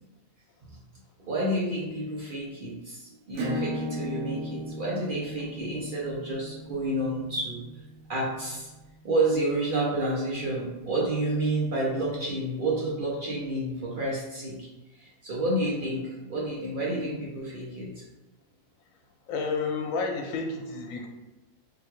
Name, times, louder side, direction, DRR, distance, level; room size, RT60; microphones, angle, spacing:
voice 1, 1.3-7.6 8.1-8.7 9.0-14.7 15.0-18.0, right 1 dB, 50° right, -4 dB, 0.7 m, -29 dB
Acoustic guitar / Strum, 3.3-8.6, right 1 dB, 80° right, 1.1 m, -36 dB
voice 2, 19.3-21.1, left 4 dB, 80° left, 3 dB, 1.0 m, -30 dB
3.8 x 2.2 x 3.0 m, 1.1 s
omnidirectional pair, 1.4 m